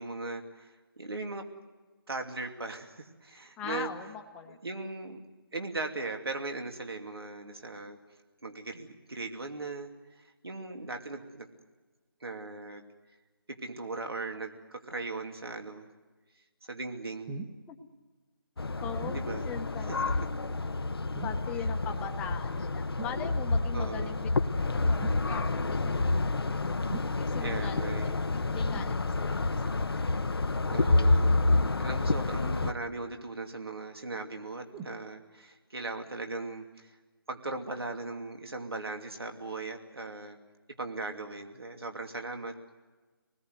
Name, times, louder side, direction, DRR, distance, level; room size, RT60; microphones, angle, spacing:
voice 1, 0.0-1.5 2.1-3.9 4.6-5.2 5.5-8.0 8.4-11.5 12.2-12.8 13.5-15.9 16.7-17.4 19.1-19.5 19.8-20.1 23.7-24.2 27.3-28.3 30.7-37.0 37.3-40.4 40.8-42.5, right 3 dB, 80° right, 4 dB, 2.8 m, -38 dB
voice 2, 3.6-4.6 17.7-17.8 18.8-19.2 19.4-20.1 21.2-24.3 24.6-26.8 27.2-28.1 28.4-30.0, left 8 dB, 10° left, 5 dB, 1.0 m, -41 dB
sound 1, 17.3-17.6 19.0-19.3 21.1-21.5 23.0-23.2 25.0-25.3 26.9-27.2 28.7-29.0 30.7-30.9 32.6-33.2 34.7-35.0 35.8-35.9, right 5 dB, 20° right, 1.1 m, -42 dB
sound 2, 18.6-32.7, left 2 dB, 80° left, 1.0 m, -29 dB
26.5 x 20.0 x 8.0 m, 1.3 s
figure-of-eight pair, 160°, 13 cm